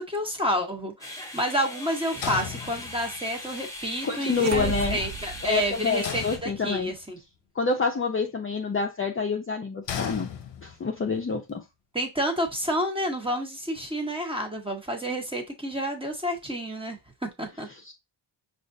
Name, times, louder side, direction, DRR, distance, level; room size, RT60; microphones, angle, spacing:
voice 1, 0.1-7.2 11.9-17.0 17.4-17.7, equal, 10° right, 1.1 m, -29 dB
sound 1, 1.0-6.4, left 1 dB, 5° left, 0.9 m, -39 dB
sound 2, 2.2-3.3 6.0-7.1 9.9-11.0, left 8 dB, 60° left, 0.7 m, -35 dB
voice 2, 4.0-5.0 5.4-6.9 7.6-10.3 10.6-11.6 17.9-18.0, left 4 dB, 30° left, 0.5 m, -27 dB
sound 3, 4.3-6.3, right 7 dB, 40° right, 0.4 m, -34 dB
5.0 x 2.5 x 2.6 m
cardioid pair, 75°, 47 cm